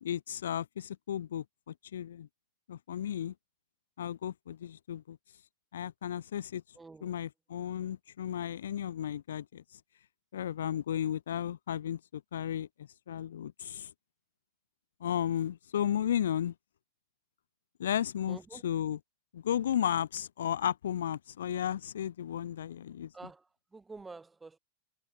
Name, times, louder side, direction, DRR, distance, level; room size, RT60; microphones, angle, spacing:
voice 1, 0.0-2.3 2.7-3.3 4.0-5.2 5.7-6.6 7.0-9.6 10.3-12.7 13.1-13.9 15.0-16.5 17.8-19.0 19.3-23.1, left 10 dB, 65° left, 0.5 m, -34 dB
voice 2, 6.7-7.2 18.3-18.6 23.1-23.5 23.7-24.6, right 3 dB, 10° right, 3.0 m, -48 dB
figure-of-eight pair, 90°, 0 cm